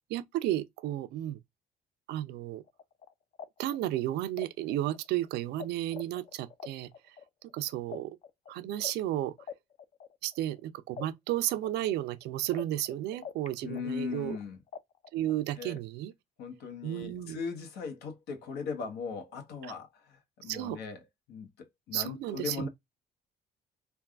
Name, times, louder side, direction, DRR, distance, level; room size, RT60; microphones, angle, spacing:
voice 1, 0.1-1.4 2.1-2.6 3.6-7.2 7.5-8.2 8.5-9.3 10.2-14.4 15.1-16.1 16.8-17.4 20.4-20.8 21.9-22.7, right 13 dB, 80° right, 0.5 m, -33 dB
sound 1, 2.7-5.7 5.9-10.6 11.0-13.5 13.7-15.4, left 7 dB, 45° left, 0.5 m, -45 dB
voice 2, 13.6-14.6 15.6-15.8 16.4-21.0 21.3-22.7, left 5 dB, 80° left, 1.1 m, -39 dB
3.4 x 2.3 x 2.3 m
cardioid pair, 110°, 17 cm